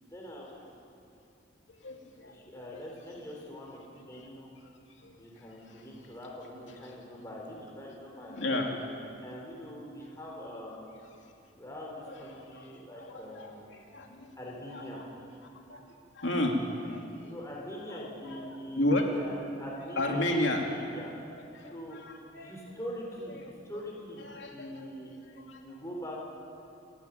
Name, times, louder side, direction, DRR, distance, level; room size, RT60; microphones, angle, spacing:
voice 1, 0.1-0.8 2.2-4.5 5.2-8.6 9.2-11.0 11.5-13.6 14.4-15.0 17.3-19.3 19.6-21.1 21.7-22.0 22.3-25.1 25.6-26.2, equal, 15° left, -2 dB, 4.1 m, -43 dB
voice 2, 1.7-2.5 4.1-4.2 5.0-5.2 8.3-8.7 12.3-12.7 13.0-14.3 14.7-15.1 15.4-15.8 16.1-17.3 17.9-19.1 19.9-20.6 21.3-22.5 23.4-23.6 24.2-24.9 25.5-25.6, left 1 dB, 85° left, 1 dB, 2.9 m, -33 dB
27.5 x 11.5 x 9.3 m, 2.6 s
head